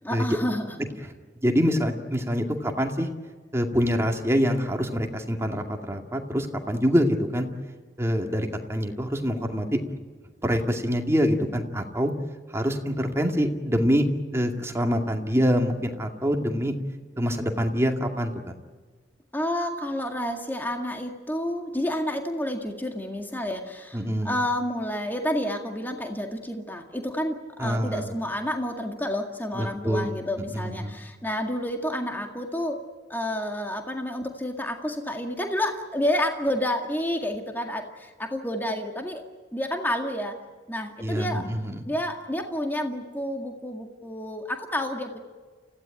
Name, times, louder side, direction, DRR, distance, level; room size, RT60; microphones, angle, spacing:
voice 1, 0.0-0.8 19.3-32.8 33.1-39.2 39.5-40.4 40.7-41.5 41.9-45.2, left 1 dB, 10° left, 3 dB, 1.9 m, -29 dB
voice 2, 1.4-3.1 3.5-7.5 8.0-9.8 10.4-12.1 12.5-14.1 14.3-16.7 17.2-18.3 23.9-24.3 27.6-28.1 29.5-30.1 30.5-30.9 41.0-41.8, equal, 15° right, 3 dB, 2.3 m, -25 dB
30.0 x 16.5 x 9.1 m, 1.4 s
head